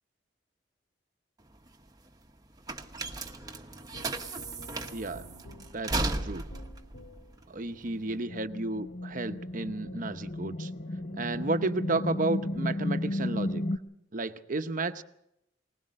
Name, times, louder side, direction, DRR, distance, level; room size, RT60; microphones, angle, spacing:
sound 1, 1.4-8.2, right 2 dB, 20° right, 1.1 m, -36 dB
sound 2, 3.9-7.5, left 1 dB, 85° left, 2.0 m, -49 dB
voice 1, 4.9-5.3 5.6-6.4 7.5-10.7 11.1-13.6 14.1-15.0, right 2 dB, 45° right, 10 dB, 0.9 m, -32 dB
sound 3, 7.9-13.8, left 1 dB, 40° left, 0.8 m, -34 dB
21.0 x 20.0 x 6.5 m, 0.81 s
head